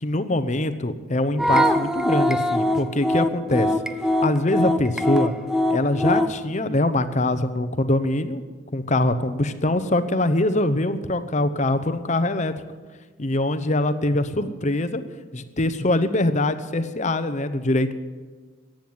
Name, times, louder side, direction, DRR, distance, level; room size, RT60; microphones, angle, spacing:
voice 1, 0.0-3.7 4.2-5.3 5.7-8.4 8.7-12.5 13.2-15.0 15.3-17.9, left 1 dB, 35° left, 11 dB, 0.8 m, -23 dB
sound 1, 1.4-6.4, left 1 dB, 5° right, 0.5 m, -22 dB
14.5 x 9.1 x 9.5 m, 1.4 s
head